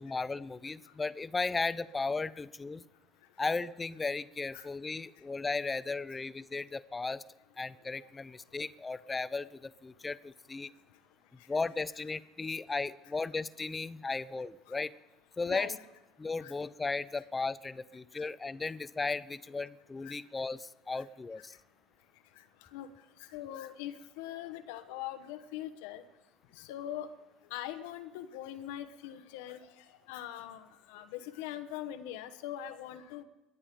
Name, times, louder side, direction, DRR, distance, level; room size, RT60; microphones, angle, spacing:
voice 1, 0.0-2.8 3.4-7.2 7.6-10.7 11.5-14.9 15.4-15.7 16.2-21.5, left 3 dB, 20° left, 17 dB, 0.6 m, -35 dB
voice 2, 22.4-22.9 23.2-26.0 26.6-27.1 27.5-33.2, left 12 dB, 65° left, 9 dB, 1.0 m, -42 dB
22.0 x 9.7 x 5.2 m, 0.98 s
figure-of-eight pair, 60°, 0 cm